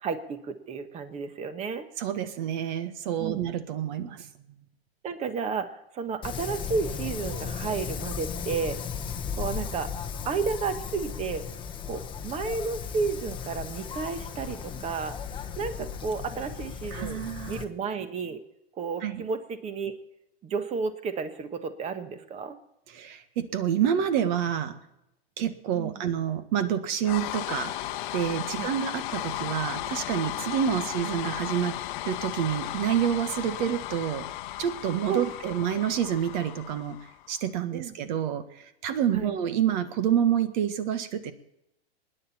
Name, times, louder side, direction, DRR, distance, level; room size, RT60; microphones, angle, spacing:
voice 1, 0.0-1.9 3.2-3.4 5.0-8.8 9.4-9.9 10.2-11.5 11.9-15.1 15.6-18.4 18.8-20.0 20.4-22.6 25.7-26.0 28.5-28.7 35.1-35.8 37.7-37.9 39.1-39.3, right 5 dB, 20° right, 10 dB, 1.4 m, -32 dB
voice 2, 2.0-4.3 16.9-17.6 19.0-19.2 22.9-24.7 25.4-27.7 28.1-31.8 32.0-34.3 34.6-37.0 37.3-41.3, right 9 dB, 45° right, 11 dB, 1.6 m, -28 dB
Wind, 6.2-17.6, left 7 dB, 15° left, 1.0 m, -36 dB
sound 1, 27.0-37.3, left 15 dB, 50° left, 1.0 m, -35 dB
24.5 x 10.5 x 4.3 m, 0.87 s
hypercardioid pair, 130°, 31 cm